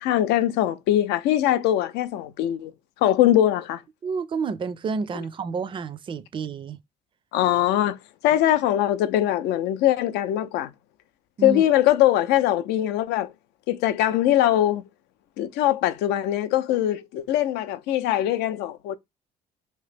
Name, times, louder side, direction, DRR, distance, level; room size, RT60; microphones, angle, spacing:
voice 1, 0.0-2.7 3.0-3.8 7.3-8.0 8.2-10.7 11.4-13.3 13.7-14.8 15.4-19.0, left 12 dB, 90° left, 0.5 m, -22 dB
voice 2, 4.0-6.8 11.4-11.6, right 5 dB, 30° right, 0.4 m, -30 dB
3.0 x 2.8 x 3.3 m
cardioid pair, 110°, 17 cm